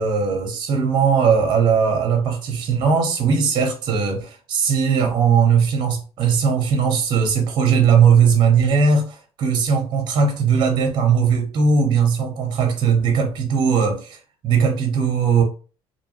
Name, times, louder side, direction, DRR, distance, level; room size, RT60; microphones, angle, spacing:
voice 1, 0.0-14.2 14.4-15.4, right 6 dB, 50° right, 0.7 m, -18 dB
2.6 x 2.2 x 2.9 m
cardioid pair, 110°, 10 cm